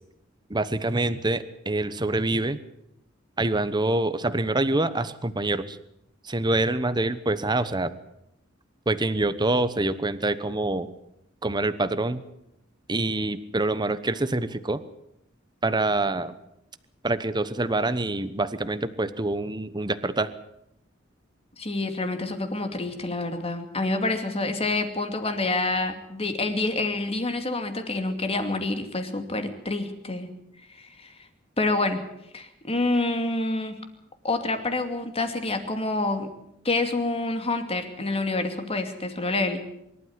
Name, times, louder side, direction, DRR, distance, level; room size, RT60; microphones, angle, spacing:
voice 1, 0.5-2.6 3.4-5.8 6.2-7.9 8.9-10.9 11.4-12.2 12.9-14.8 15.6-16.3 17.0-20.3, right 2 dB, 20° right, 12 dB, 1.0 m, -26 dB
voice 2, 21.6-30.3 30.7-31.1 31.6-32.0 32.3-33.8 34.2-36.3 36.6-39.6, left 2 dB, 30° left, 7 dB, 2.6 m, -27 dB
24.5 x 12.5 x 9.6 m, 0.82 s
head